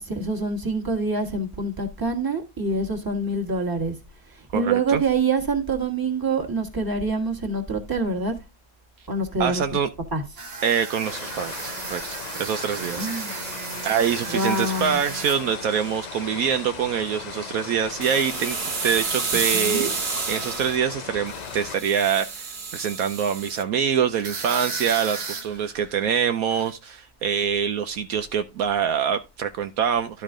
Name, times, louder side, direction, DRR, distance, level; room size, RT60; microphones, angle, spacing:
voice 1, 0.0-3.9 4.5-8.4 9.1-9.6 10.1-10.2 13.0-13.4 14.3-15.0 19.5-19.9, right 3 dB, 15° right, 1.4 m, -25 dB
voice 2, 4.5-5.0 9.4-9.9 10.6-13.1 13.8-18.6 18.8-19.9 20.3-30.2, right 7 dB, 70° right, 1.0 m, -25 dB
sound 1, 10.4-16.5 16.8-17.1 18.0-20.8 21.3-23.6 24.1-26.1 26.5-26.7, right 5 dB, 45° right, 1.1 m, -32 dB
sound 2, 11.0-21.8, left 6 dB, 80° left, 0.3 m, -37 dB
12.0 x 4.5 x 3.7 m
omnidirectional pair, 1.6 m